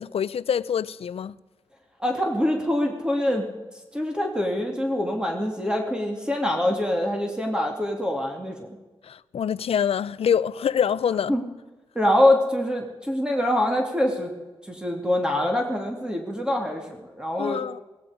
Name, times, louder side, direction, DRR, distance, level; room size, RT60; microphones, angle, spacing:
voice 1, 0.0-1.3 9.0-11.4 17.4-17.8, left 8 dB, 80° left, 0.5 m, -25 dB
voice 2, 2.0-3.5 3.9-8.8 11.3-11.4 11.9-14.3 14.6-17.6, left 1 dB, 10° right, 2.6 m, -24 dB
17.0 x 15.5 x 5.1 m
cardioid pair, 70°, 10 cm